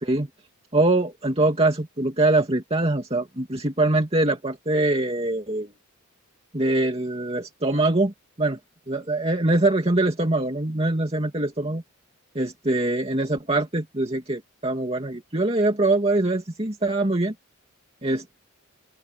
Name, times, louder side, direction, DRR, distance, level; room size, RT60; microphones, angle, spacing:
voice 1, 0.7-5.7 6.5-8.6 8.9-11.8 12.3-17.3 18.0-18.4, right 2 dB, 30° right, 2.5 m, -23 dB
open air
head